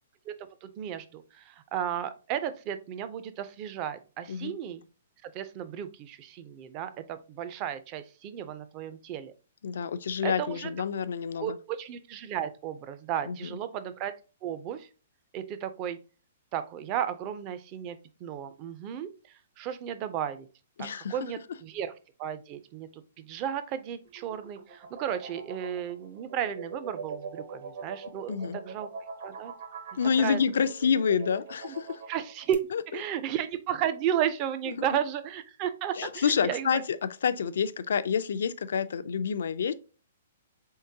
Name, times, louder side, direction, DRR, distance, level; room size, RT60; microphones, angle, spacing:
voice 1, 0.3-4.8 5.2-9.3 10.2-10.7 11.4-14.1 14.4-14.9 15.3-16.0 16.5-19.1 19.6-20.5 20.8-21.9 22.2-28.9 29.2-29.5 30.2-30.4 31.6-31.7 32.1-32.6 32.9-36.8, right 10 dB, 25° right, 0.4 m, -34 dB
voice 2, 9.6-11.6 13.3-13.5 20.8-21.1 28.3-28.6 30.0-32.0 32.7-32.8 35.9-39.7, left 6 dB, 75° left, 0.4 m, -28 dB
sound 1, 24.1-32.5, right 5 dB, 60° right, 0.9 m, -42 dB
3.7 x 3.6 x 2.7 m
hypercardioid pair, 165°, 0 cm